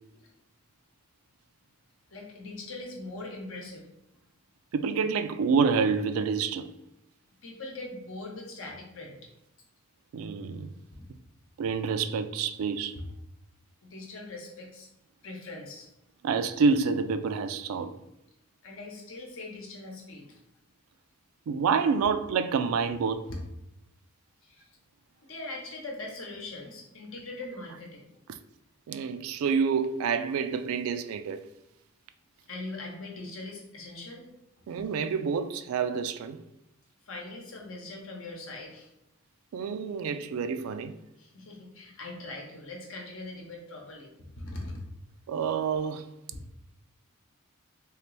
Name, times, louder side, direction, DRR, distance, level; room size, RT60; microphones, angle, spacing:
voice 1, 2.1-3.9 7.4-9.2 13.8-14.9 15.2-15.9 18.6-20.4 24.4-24.7 25.2-28.1 32.5-34.3 37.0-38.9 41.2-44.8, left 2 dB, 75° left, 0.9 m, -41 dB
voice 2, 4.7-6.7 10.1-10.7 11.6-12.9 16.2-17.9 21.5-23.2 28.9-31.4 34.7-36.4 39.5-40.9 45.3-46.1, right 5 dB, 85° right, 0.3 m, -28 dB
3.2 x 2.9 x 3.1 m
head